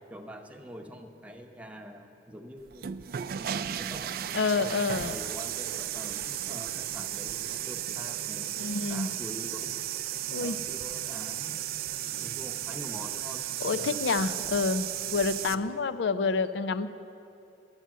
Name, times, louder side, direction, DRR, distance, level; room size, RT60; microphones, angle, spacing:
voice 1, 0.1-2.9 3.4-4.1 4.6-8.5 8.9-9.8 10.3-11.6 12.2-14.1 15.5-15.7, equal, 10° right, 3 dB, 0.8 m, -45 dB
sound 1, 2.7-15.5, right 11 dB, 55° right, 0.4 m, -34 dB
voice 2, 4.3-5.2 8.6-9.1 10.3-10.6 13.6-16.9, left 4 dB, 85° left, 11 dB, 0.5 m, -28 dB
11.5 x 8.1 x 7.4 m, 2.8 s
head